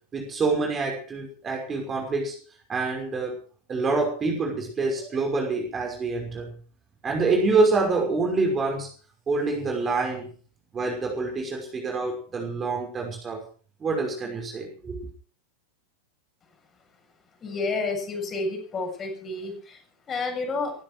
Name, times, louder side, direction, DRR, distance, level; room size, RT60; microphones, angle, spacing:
voice 1, 0.1-2.4 2.7-3.4 3.7-6.5 7.0-8.9 9.3-10.3 10.7-13.4 13.8-15.1, right 3 dB, 20° right, 2 dB, 5.7 m, -26 dB
voice 2, 17.4-20.7, left 3 dB, 25° left, 4 dB, 7.5 m, -30 dB
18.0 x 15.5 x 4.8 m, 0.42 s
figure-of-eight pair, 90°, 0 cm